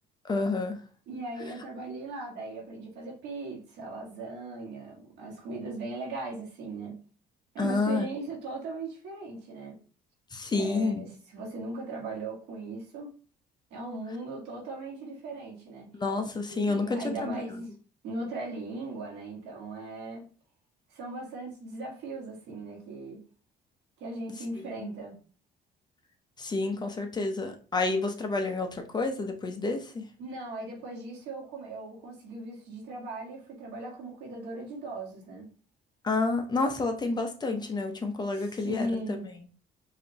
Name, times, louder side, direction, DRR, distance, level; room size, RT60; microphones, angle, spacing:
voice 1, 0.2-0.8 7.6-8.1 10.3-11.0 15.9-17.5 24.8-24.9 26.4-30.0 36.0-38.9, left 3 dB, 25° left, 0.7 m, -29 dB
voice 2, 1.1-7.0 7.5-9.8 10.5-13.1 13.7-15.9 16.3-17.7 18.0-20.2 20.9-23.2 24.0-25.2 30.2-35.5 38.3-39.3, right 2 dB, 85° right, 1.7 m, -38 dB
4.9 x 2.8 x 2.8 m
cardioid pair, 110°, 17 cm